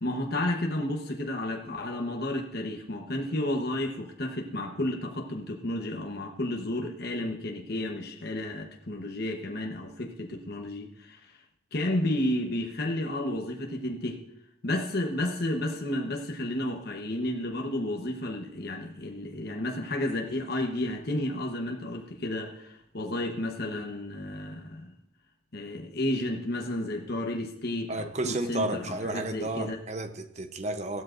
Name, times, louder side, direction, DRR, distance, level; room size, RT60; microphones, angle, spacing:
voice 1, 0.0-11.2 11.7-14.2 14.6-24.9 25.5-29.8, left 1 dB, 55° left, 1.1 m, -32 dB
voice 2, 27.9-31.0, right 2 dB, 35° right, 0.7 m, -32 dB
15.5 x 12.5 x 2.6 m
head